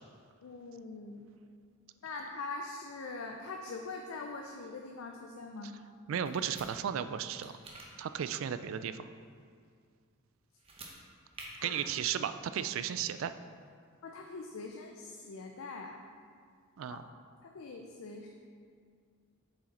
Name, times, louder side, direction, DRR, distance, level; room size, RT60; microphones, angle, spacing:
voice 1, 0.4-1.3 2.0-5.8 11.6-11.8 14.0-16.0 16.9-17.0 17.4-18.3, left 3 dB, 70° left, 2 dB, 0.5 m, -43 dB
voice 2, 6.1-7.5 8.0-9.1 11.6-13.3 16.8-17.0, right 8 dB, 70° right, 12 dB, 0.3 m, -34 dB
sound 1, 6.3-6.7 7.4-7.9 10.6-10.9 11.3-11.5, right 3 dB, 25° right, 0.9 m, -48 dB
7.3 x 4.8 x 4.1 m, 2.1 s
head